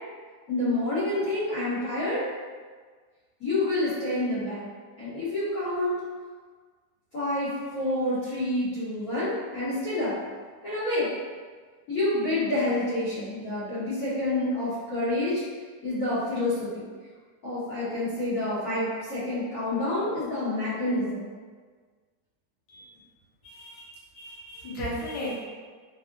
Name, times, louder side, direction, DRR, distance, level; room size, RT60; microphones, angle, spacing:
voice 1, 0.5-2.2 3.4-4.7 5.0-6.0 7.1-10.2 10.6-11.1 11.9-15.4 15.8-16.9 17.4-21.3, left 1 dB, 55° left, -14 dB, 1.4 m, -28 dB
voice 2, 23.4-23.9 24.1-25.4, equal, 90° left, -6 dB, 1.5 m, -35 dB
3.5 x 2.0 x 2.4 m, 1.5 s
omnidirectional pair, 2.0 m